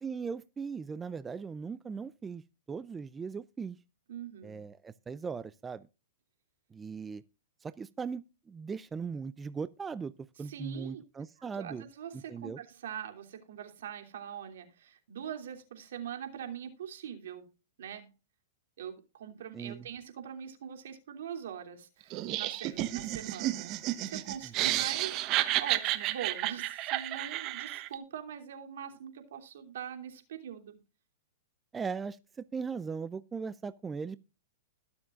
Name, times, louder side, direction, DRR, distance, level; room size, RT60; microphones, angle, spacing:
voice 1, 0.0-2.4 2.7-3.8 4.4-5.9 6.7-7.2 7.6-10.1 10.4-11.8 12.1-12.6 19.5-19.8 24.4-24.8 31.7-34.2, right 5 dB, 15° right, 0.4 m, -39 dB
voice 2, 4.1-4.6 10.4-11.0 11.4-17.5 17.8-18.1 18.8-25.2 25.6-30.8, right 9 dB, 75° right, 3.0 m, -43 dB
Laughter, 22.1-27.9, right 15 dB, 35° right, 1.1 m, -32 dB
21.0 x 7.0 x 2.5 m
hypercardioid pair, 135°, 0 cm